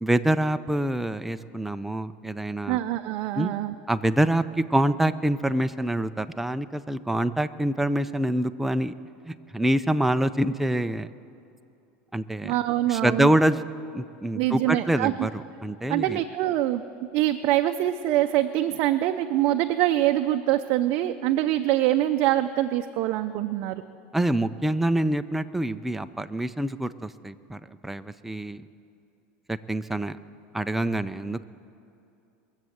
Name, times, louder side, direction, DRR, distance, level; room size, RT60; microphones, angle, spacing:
voice 1, 0.0-2.8 3.4-3.5 3.9-8.9 9.3-11.1 12.1-12.5 12.9-13.6 13.9-16.2 24.1-28.6 29.5-30.2 30.5-31.4, right 1 dB, 5° right, 10 dB, 0.5 m, -26 dB
voice 2, 2.7-3.7 12.4-13.3 14.3-15.3 15.9-16.8 17.1-23.8, right 14 dB, 55° right, 7 dB, 0.5 m, -24 dB
22.0 x 7.5 x 7.9 m, 2.6 s
supercardioid pair, 120°, 6 cm